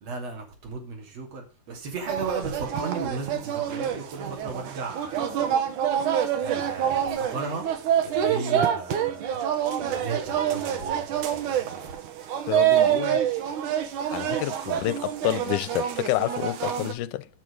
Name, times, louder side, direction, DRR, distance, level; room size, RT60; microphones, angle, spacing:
voice 1, 0.0-5.3 6.4-7.7 8.0-9.4 9.8-12.0 14.6-14.8, right 4 dB, 55° right, 3.8 m, -35 dB
sound 1, 2.1-16.9, right 9 dB, 75° right, 2.6 m, -26 dB
voice 2, 12.5-13.3 14.1-17.3, left 15 dB, 80° left, 2.2 m, -29 dB
10.5 x 6.2 x 5.1 m
omnidirectional pair, 3.6 m